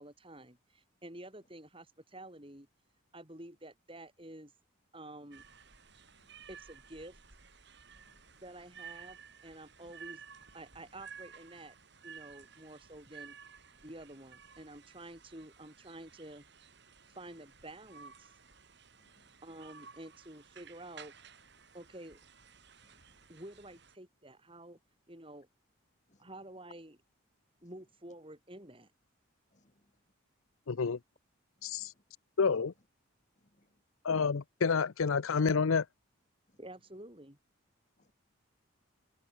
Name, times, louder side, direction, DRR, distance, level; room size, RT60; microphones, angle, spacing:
voice 1, 0.0-2.7 3.1-4.5 4.9-5.4 6.5-7.2 8.4-10.2 10.5-11.8 12.0-13.3 13.8-16.4 17.1-18.3 19.4-21.1 21.7-22.2 23.3-24.8 25.1-25.5 26.2-27.0 27.6-28.9 36.6-37.4, right 1 dB, 25° right, 5.8 m, -50 dB
sound 1, 5.3-24.0, right 6 dB, 55° right, 7.3 m, -55 dB
voice 2, 7.9-8.3 12.4-12.5 17.1-17.2 19.0-19.3 22.8-23.0 26.1-26.3 29.5-29.9 31.6-32.0 33.4-33.7 36.5-36.6 38.0-38.1, left 1 dB, 35° left, 2.2 m, -71 dB
voice 3, 30.7-31.0 31.6-31.9 32.4-32.7 34.0-35.9, left 5 dB, 75° left, 0.6 m, -29 dB
head